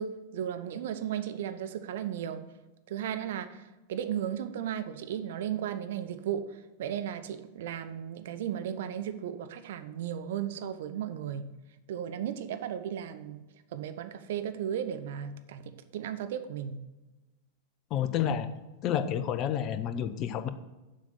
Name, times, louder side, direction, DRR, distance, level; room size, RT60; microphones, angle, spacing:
voice 1, 0.0-2.4 2.9-6.5 6.8-11.5 11.9-13.4 13.7-15.6 15.9-16.8, right 9 dB, 55° right, 10 dB, 0.6 m, -35 dB
voice 2, 17.9-18.5 18.8-20.5, left 9 dB, 35° left, 11 dB, 0.6 m, -29 dB
7.4 x 5.8 x 6.7 m, 1.1 s
figure-of-eight pair, 90°, 0 cm